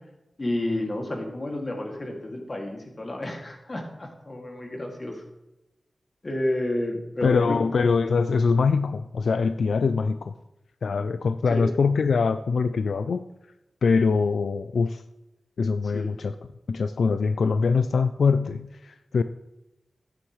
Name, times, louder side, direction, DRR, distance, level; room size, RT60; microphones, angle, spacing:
voice 1, 0.4-5.2 6.2-7.6 11.5-11.7 15.9-16.1, left 1 dB, 40° left, 1 dB, 2.2 m, -30 dB
voice 2, 7.2-10.3 10.8-13.2 13.8-15.0 15.6-16.3 16.7-19.2, left 5 dB, 85° left, 11 dB, 0.3 m, -23 dB
11.5 x 9.2 x 3.1 m, 0.93 s
wide cardioid pair, 65°, 0 cm